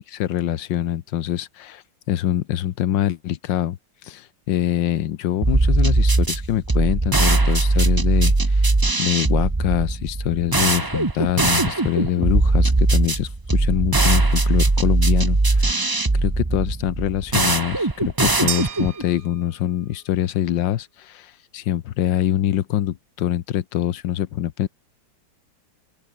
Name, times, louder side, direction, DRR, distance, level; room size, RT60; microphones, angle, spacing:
voice 1, 0.1-3.8 4.0-8.7 9.0-15.9 16.2-24.7, left 12 dB, 75° left, 1.6 m, -24 dB
sound 1, 5.4-19.0, right 2 dB, 15° right, 0.8 m, -20 dB
sound 2, 18.5-19.9, right 9 dB, 50° right, 1.3 m, -32 dB
open air
omnidirectional pair, 2.0 m